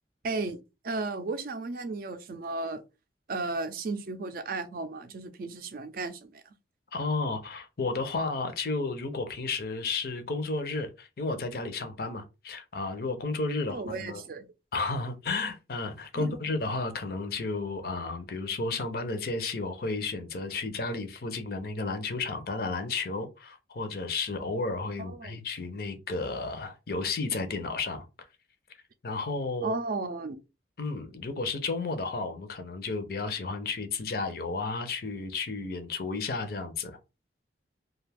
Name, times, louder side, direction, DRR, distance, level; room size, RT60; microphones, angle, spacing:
voice 1, 0.2-0.6 0.8-2.8 3.3-6.4 13.7-14.5 16.1-16.3 25.0-25.4 29.6-30.4, right 3 dB, 50° right, 0.4 m, -34 dB
voice 2, 6.9-14.2 14.7-28.1 29.0-29.7 30.8-37.0, left 3 dB, 55° left, 0.5 m, -32 dB
2.5 x 2.3 x 3.3 m
head